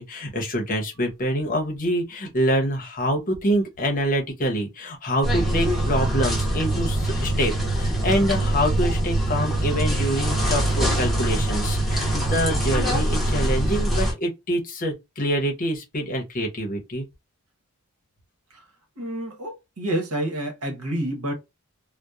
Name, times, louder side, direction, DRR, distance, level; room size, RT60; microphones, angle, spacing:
voice 1, 0.0-17.0, equal, 40° left, 0.7 m, -26 dB
sound 1, 5.2-14.1, right 1 dB, ahead, 0.8 m, -23 dB
voice 2, 19.0-21.3, right 1 dB, 75° right, 1.0 m, -28 dB
2.8 x 2.1 x 2.3 m
head